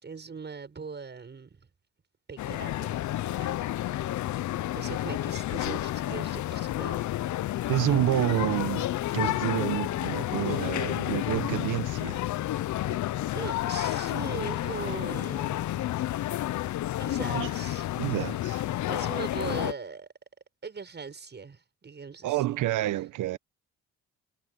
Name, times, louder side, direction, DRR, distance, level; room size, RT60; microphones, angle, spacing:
voice 1, 0.0-1.6 2.3-3.1 3.3-3.5 4.8-7.1 13.3-15.9 17.0-17.9 18.9-20.1 20.6-22.4, right 5 dB, 35° right, 6.9 m, -40 dB
sound 1, 2.4-19.7, left 14 dB, 70° left, 0.8 m, -30 dB
voice 2, 7.7-8.9 9.1-12.2 17.3-17.5 18.0-18.6 22.2-23.4, right 15 dB, 85° right, 1.2 m, -28 dB
cardioid pair, 90°, 30 cm